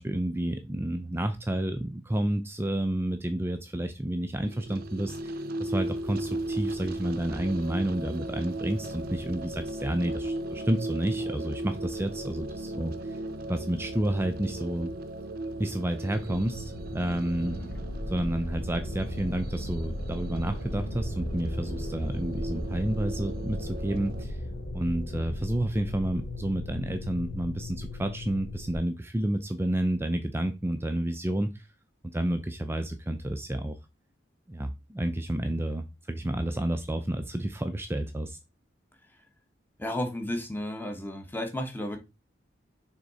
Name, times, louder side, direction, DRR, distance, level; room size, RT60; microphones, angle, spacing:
voice 1, 0.0-12.9 13.5-14.9 15.6-17.6 18.1-24.4 24.7-31.7 32.1-33.8 34.5-38.4, right 1 dB, 15° right, 0.5 m, -30 dB
sound 1, 4.4-24.3, right 1 dB, 55° right, 0.6 m, -37 dB
sound 2, 16.1-28.8, left 1 dB, 55° left, 1.1 m, -36 dB
voice 2, 17.4-17.7 39.1-39.2 39.8-42.0, left 1 dB, 10° left, 1.2 m, -33 dB
6.3 x 3.6 x 4.1 m
head